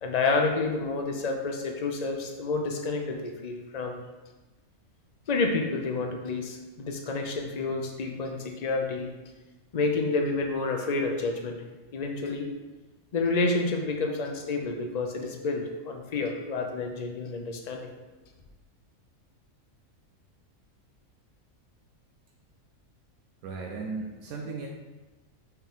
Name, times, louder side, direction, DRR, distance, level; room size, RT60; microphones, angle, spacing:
voice 1, 0.0-4.0 5.3-9.1 9.7-11.6 11.9-12.5 13.1-17.9, left 3 dB, 70° left, 3 dB, 0.4 m, -29 dB
voice 2, 23.4-24.7, right 4 dB, 80° right, 0 dB, 1.2 m, -36 dB
5.7 x 4.6 x 3.6 m, 1.1 s
omnidirectional pair, 1.5 m